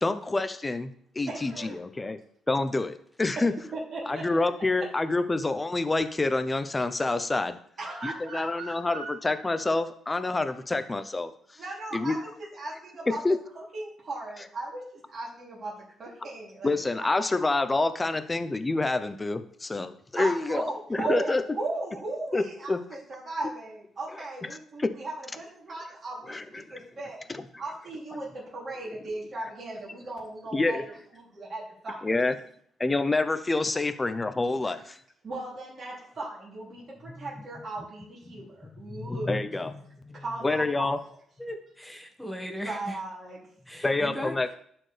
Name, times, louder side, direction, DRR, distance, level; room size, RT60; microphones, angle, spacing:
voice 1, 0.0-0.9 1.1-2.2 2.5-3.5 4.1-7.6 8.0-11.6 11.9-12.2 13.2-13.4 16.6-21.4 22.3-22.8 24.8-24.9 26.3-26.6 30.5-30.8 32.0-32.3 32.8-35.0 38.3-38.4 39.0-41.0 43.8-44.5, left 2 dB, 20° left, 10 dB, 0.7 m, -27 dB
voice 2, 1.3-1.8 3.7-4.4 4.8-4.9 7.8-9.1 11.6-13.2 13.5-17.1 18.0-18.1 20.2-27.2 27.6-32.1 34.6-34.9 35.2-39.5 40.1-40.9 42.7-43.4, right 2 dB, 40° right, -6 dB, 3.0 m, -37 dB
voice 3, 41.4-43.0 43.7-44.3, equal, ahead, 1 dB, 1.5 m, -37 dB
11.5 x 4.4 x 3.4 m, 0.63 s
cardioid pair, 90°, 0 cm